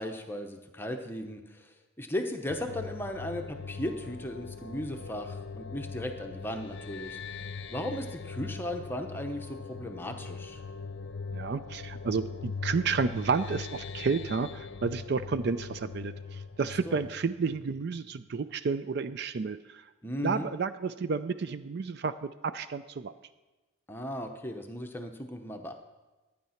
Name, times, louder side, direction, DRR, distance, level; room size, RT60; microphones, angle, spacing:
voice 1, 0.0-10.6 16.8-17.0 20.0-20.5 23.9-25.7, left 1 dB, 10° left, 4 dB, 0.8 m, -36 dB
sound 1, 2.5-17.9, left 4 dB, 55° left, 0.7 m, -41 dB
voice 2, 11.3-19.8 20.2-23.1, right 5 dB, 50° right, 12 dB, 0.4 m, -31 dB
12.5 x 9.4 x 5.8 m, 1.2 s
head